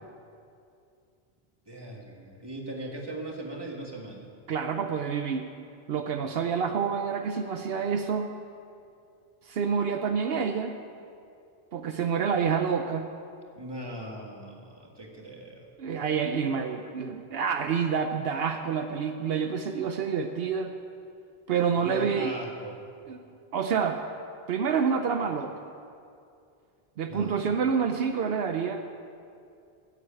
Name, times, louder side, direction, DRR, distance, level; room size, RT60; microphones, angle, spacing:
voice 1, 1.7-4.3 13.6-15.7 21.7-22.8 27.1-27.5, right 1 dB, 25° right, 0 dB, 1.8 m, -39 dB
voice 2, 4.5-5.5 5.9-8.3 9.4-10.7 11.7-13.1 15.8-20.7 21.5-22.3 23.1-23.2 23.5-24.0 24.5-25.7 27.0-28.9, right 6 dB, 75° right, 6 dB, 0.9 m, -28 dB
14.0 x 7.9 x 9.0 m, 2.5 s
omnidirectional pair, 1.0 m